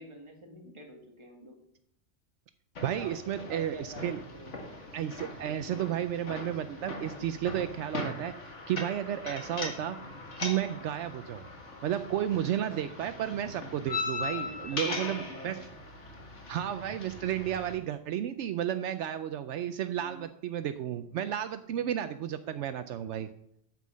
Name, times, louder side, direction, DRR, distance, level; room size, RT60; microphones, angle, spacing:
voice 1, 0.0-1.6 2.9-4.5 14.2-15.7 19.9-20.3, right 1 dB, 25° right, 2 dB, 1.7 m, -47 dB
sound 1, 2.8-17.8, left 3 dB, 75° left, 2.0 m, -40 dB
voice 2, 2.8-4.2 4.9-10.0 10.4-11.4 11.8-15.6 16.5-23.3, right 10 dB, 75° right, 10 dB, 0.9 m, -32 dB
9.1 x 7.6 x 6.3 m, 0.75 s
omnidirectional pair, 1.2 m